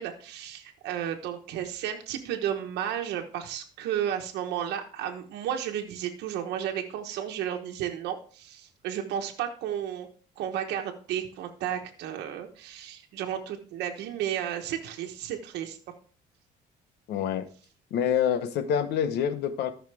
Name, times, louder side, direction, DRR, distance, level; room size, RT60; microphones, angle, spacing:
voice 1, 0.0-10.1 10.4-15.8, right 10 dB, 85° right, 3 dB, 1.2 m, -33 dB
voice 2, 17.1-17.5 17.9-19.7, left 8 dB, 75° left, 11 dB, 1.0 m, -26 dB
14.0 x 5.8 x 3.4 m, 0.42 s
cardioid pair, 110°, 17 cm